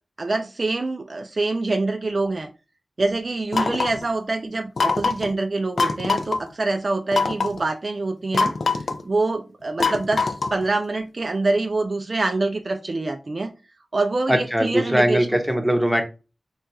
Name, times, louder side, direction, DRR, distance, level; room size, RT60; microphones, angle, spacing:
voice 1, 0.2-2.5 3.0-8.5 9.0-13.5 13.9-15.3, right 2 dB, 45° right, 6 dB, 0.3 m, -25 dB
sound 1, 3.5-4.0 4.8-5.3 5.8-6.4 7.1-7.6 8.3-9.0 9.8-10.6, left 4 dB, 75° left, 0.3 m, -23 dB
voice 2, 14.3-16.0, equal, ahead, 4 dB, 0.7 m, -20 dB
2.3 x 2.3 x 4.0 m, 0.31 s
wide cardioid pair, 90°, 0 cm